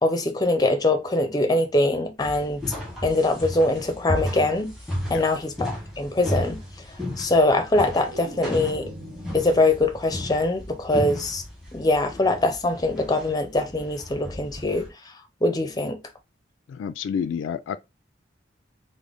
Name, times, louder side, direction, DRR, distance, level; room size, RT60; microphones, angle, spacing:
voice 1, 0.0-2.6 3.0-4.7 5.1-6.6 7.2-8.9 9.3-11.4 11.7-14.9 15.4-16.0, left 2 dB, 20° left, 0.5 m, -23 dB
sound 1, 2.2-14.9, left 1 dB, ahead, 1.0 m, -34 dB
sound 2, 7.3-10.4 10.8-11.2, equal, 75° right, 1.1 m, -42 dB
voice 2, 16.7-17.8, left 7 dB, 85° left, 0.3 m, -29 dB
3.7 x 2.0 x 3.5 m
head